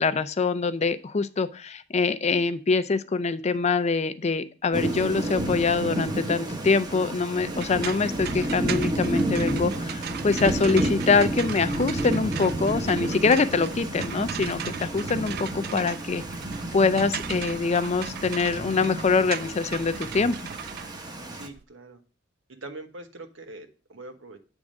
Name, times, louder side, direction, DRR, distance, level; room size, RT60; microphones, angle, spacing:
voice 1, 0.0-16.2 16.7-20.4, left 4 dB, 35° left, 13 dB, 0.5 m, -24 dB
Thunder / Rain, 4.7-21.5, right 1 dB, 20° right, 0.9 m, -31 dB
sound 1, 7.4-21.6, right 10 dB, 55° right, 0.3 m, -39 dB
voice 2, 21.3-22.0 22.5-24.4, right 2 dB, 85° right, 7 dB, 1.2 m, -43 dB
8.9 x 3.6 x 6.3 m, 0.37 s
head